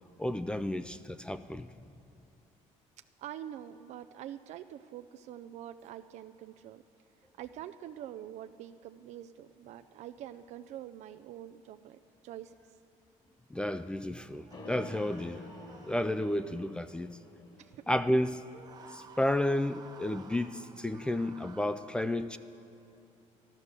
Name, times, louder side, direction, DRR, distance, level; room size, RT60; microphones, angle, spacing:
voice 1, 0.2-1.7 13.5-15.4 15.8-17.1 17.9-18.4 18.9-22.4, left 1 dB, 5° left, 0.3 m, -32 dB
voice 2, 3.2-6.8 7.4-12.8 17.6-17.9, right 11 dB, 60° right, 0.4 m, -45 dB
sound 1, 14.2-16.6 18.4-21.7, right 5 dB, 30° right, 0.9 m, -54 dB
sound 2, 14.5-18.6, left 2 dB, 35° left, 1.9 m, -50 dB
13.0 x 12.5 x 6.7 m
cardioid pair, 140°, 13 cm